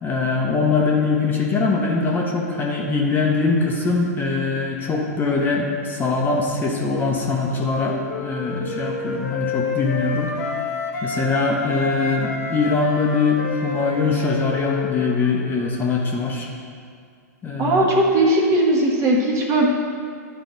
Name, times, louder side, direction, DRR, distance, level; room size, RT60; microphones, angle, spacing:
voice 1, 0.0-10.5 11.0-16.5 17.4-17.9, left 4 dB, 20° left, -1 dB, 0.9 m, -22 dB
Wind instrument woodwind instrument, 6.9-11.3 11.6-16.1, left 4 dB, 70° left, 1.1 m, -30 dB
voice 2, 17.6-19.7, right 1 dB, 30° right, -2 dB, 1.4 m, -18 dB
11.0 x 4.0 x 3.9 m, 2.2 s
hypercardioid pair, 115°, 9 cm